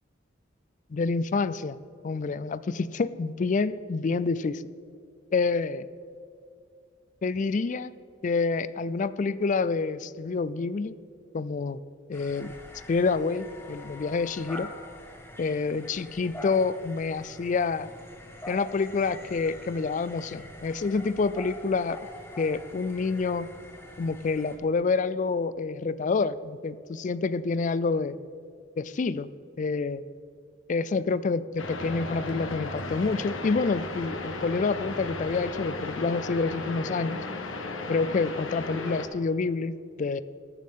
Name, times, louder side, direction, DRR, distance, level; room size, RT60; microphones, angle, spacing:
voice 1, 0.9-1.8 2.0-4.6 5.3-5.9 7.2-7.9 8.2-11.0 11.3-11.8 12.1-12.5 12.9-14.7 15.4-17.9 18.5-22.0 22.4-23.5 24.0-28.2 28.8-29.3 29.6-30.0 30.7-37.2 37.9-40.2, left 4 dB, 40° left, 16 dB, 0.4 m, -28 dB
sound 1, 12.1-24.6, left 1 dB, 10° left, 1.4 m, -45 dB
sound 2, 31.6-39.1, left 2 dB, 85° left, 1.4 m, -35 dB
14.0 x 12.5 x 3.6 m, 2.5 s
head